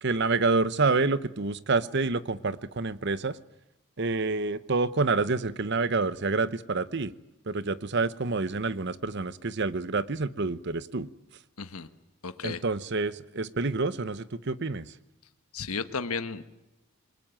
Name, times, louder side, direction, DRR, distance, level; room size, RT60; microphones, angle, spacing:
voice 1, 0.0-3.4 4.0-7.1 7.5-11.1 12.4-14.9, right 3 dB, 50° right, 15 dB, 0.9 m, -28 dB
voice 2, 11.6-11.9 12.2-12.6 15.5-16.4, left 5 dB, 85° left, 10 dB, 1.3 m, -33 dB
28.0 x 21.0 x 9.1 m, 0.94 s
head